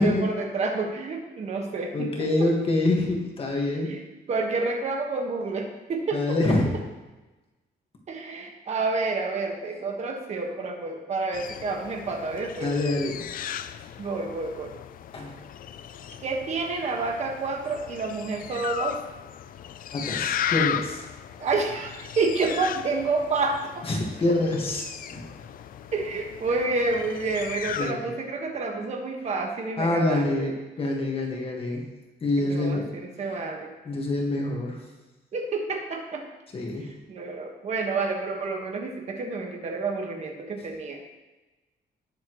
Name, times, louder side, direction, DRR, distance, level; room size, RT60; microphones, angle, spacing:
voice 1, 0.0-2.3 3.9-4.0 4.3-6.4 8.1-12.7 14.0-14.7 16.2-19.0 21.4-23.9 25.9-30.5 31.4-31.8 32.4-33.7 35.3-36.3 36.8-41.0, right 3 dB, 40° right, 2 dB, 1.6 m, -29 dB
voice 2, 1.9-3.9 6.1-6.7 12.6-13.2 15.1-15.4 19.9-21.0 23.9-24.8 25.1-25.2 27.8-28.1 29.8-31.8 32.2-32.9 33.8-34.8 36.5-36.9, left 2 dB, 35° left, 0 dB, 1.7 m, -26 dB
sound 1, 11.3-27.9, left 10 dB, 55° left, 0.4 m, -36 dB
19.0 x 7.1 x 3.1 m, 1.1 s
cardioid pair, 175°, 17 cm